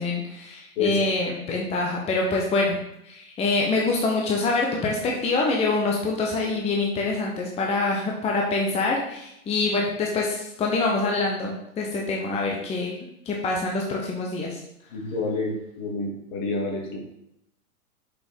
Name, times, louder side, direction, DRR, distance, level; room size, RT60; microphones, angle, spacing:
voice 1, 0.0-2.8 3.0-12.9 13.3-14.6, left 3 dB, 15° left, -1 dB, 0.8 m, -25 dB
voice 2, 0.8-1.1 14.9-17.0, left 3 dB, 55° left, -1 dB, 2.6 m, -28 dB
7.4 x 5.3 x 3.7 m, 0.82 s
hypercardioid pair, 110°, 46 cm